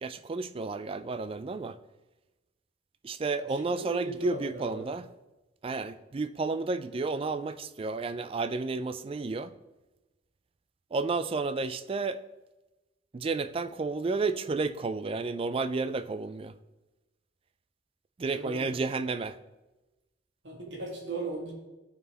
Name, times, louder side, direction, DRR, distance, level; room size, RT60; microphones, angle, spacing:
voice 1, 0.0-1.8 3.0-5.1 5.6-9.5 10.9-12.2 13.1-16.5 18.2-19.4, right 3 dB, 30° right, 13 dB, 0.4 m, -31 dB
voice 2, 3.5-4.9 18.3-18.7 20.4-21.5, right 2 dB, 85° right, -1 dB, 2.1 m, -38 dB
13.5 x 4.5 x 3.3 m, 1.1 s
head